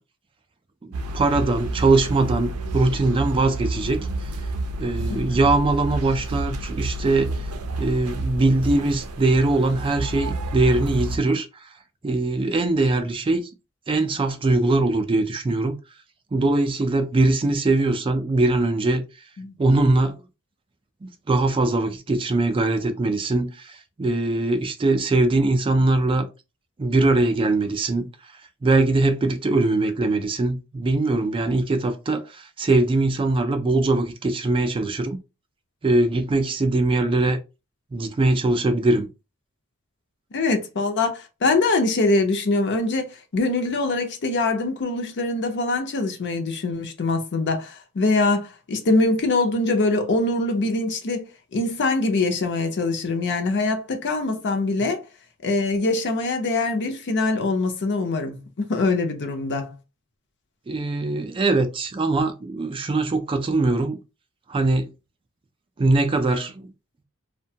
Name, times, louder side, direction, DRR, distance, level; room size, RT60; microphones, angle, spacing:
voice 1, 0.8-4.3 4.8-7.5 7.8-11.7 12.0-13.5 13.9-15.7 16.3-19.0 19.6-20.2 21.0-26.3 26.8-35.2 35.8-37.4 37.9-39.1 60.7-64.0 64.5-64.9 65.8-66.7, right 2 dB, 25° right, 0.3 m, -22 dB
sound 1, 0.9-11.2, right 2 dB, 85° right, 0.4 m, -29 dB
voice 2, 40.3-55.0 55.4-59.7, left 3 dB, 55° left, 0.6 m, -23 dB
2.7 x 2.2 x 2.7 m
head